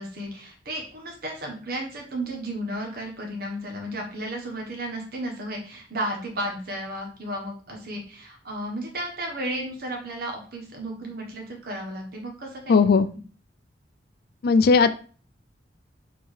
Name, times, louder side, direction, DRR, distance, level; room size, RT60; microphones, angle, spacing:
voice 1, 0.0-12.8, right 1 dB, 55° right, 1 dB, 1.2 m, -33 dB
voice 2, 12.7-13.1 14.4-14.9, left 4 dB, 55° left, 12 dB, 0.4 m, -17 dB
4.5 x 2.8 x 3.2 m, 0.40 s
head